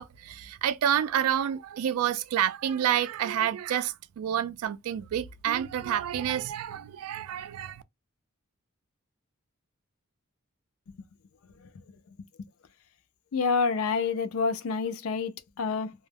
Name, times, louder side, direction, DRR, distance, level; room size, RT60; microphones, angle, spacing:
voice 1, 0.0-7.8, right 10 dB, 85° right, 0.3 m, -29 dB
voice 2, 13.3-15.9, left 5 dB, 70° left, 0.4 m, -28 dB
2.2 x 2.0 x 3.2 m
head